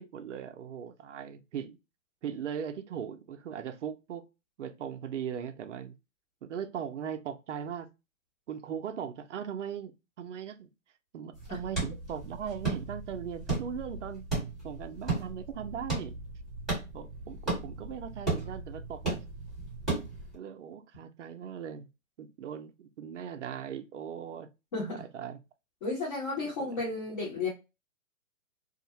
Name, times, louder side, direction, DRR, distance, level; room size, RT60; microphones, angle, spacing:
voice 1, 0.0-1.8 2.2-4.3 4.6-5.9 6.4-7.9 8.5-10.7 11.1-14.3 14.6-16.1 16.9-19.2 20.3-21.9 22.2-24.5 25.0-25.4 26.4-26.8, right 8 dB, 60° right, 0.5 m, -39 dB
sound 1, 11.3-20.3, right 3 dB, ahead, 1.1 m, -35 dB
voice 2, 24.7-25.0 25.8-27.5, left 3 dB, 30° left, 0.8 m, -33 dB
2.4 x 2.0 x 2.8 m
hypercardioid pair, 155°, 42 cm